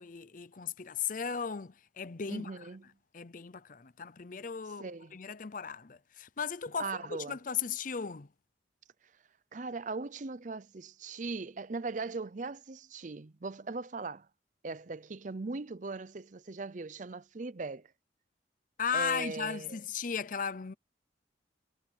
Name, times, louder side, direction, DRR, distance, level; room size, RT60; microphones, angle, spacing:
voice 1, 0.0-2.7 3.1-4.9 5.1-8.3 18.8-20.7, left 6 dB, 45° left, 0.6 m, -36 dB
voice 2, 2.3-2.9 4.8-5.2 6.8-7.4 9.5-14.3 14.6-17.9 18.9-19.8, right 3 dB, 40° right, 0.6 m, -39 dB
head